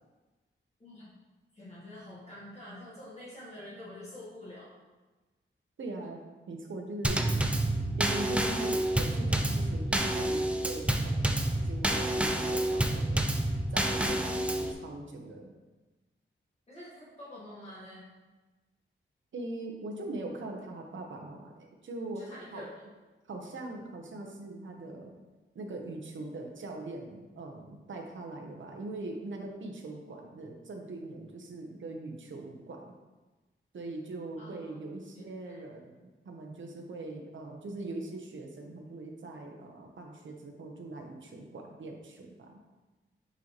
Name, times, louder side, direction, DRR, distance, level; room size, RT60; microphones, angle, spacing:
voice 1, 0.8-1.1 1.5-4.7 16.7-18.1 22.1-22.8 34.4-35.6, left 1 dB, 30° left, -8 dB, 1.5 m, -47 dB
voice 2, 5.8-6.2 6.5-7.2 8.0-15.5 19.3-22.6 23.3-25.1 25.5-32.9 33.7-42.6, right 2 dB, 65° right, 1 dB, 0.9 m, -41 dB
Drum kit / Snare drum / Bass drum, 7.0-14.7, right 1 dB, 5° right, 0.4 m, -28 dB
6.4 x 5.5 x 3.0 m, 1.2 s
wide cardioid pair, 175°, 21 cm